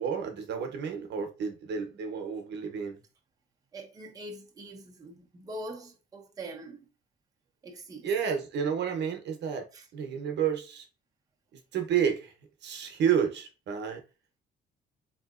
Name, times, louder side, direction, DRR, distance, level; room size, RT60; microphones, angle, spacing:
voice 1, 0.0-3.0 8.0-9.7 9.9-10.8 11.7-12.3 12.6-14.0, right 7 dB, 65° right, 0.8 m, -30 dB
voice 2, 3.7-6.9 7.6-8.1 9.7-9.9, right 1 dB, 20° right, 0.6 m, -43 dB
3.7 x 2.7 x 2.4 m
cardioid pair, 135°, 20 cm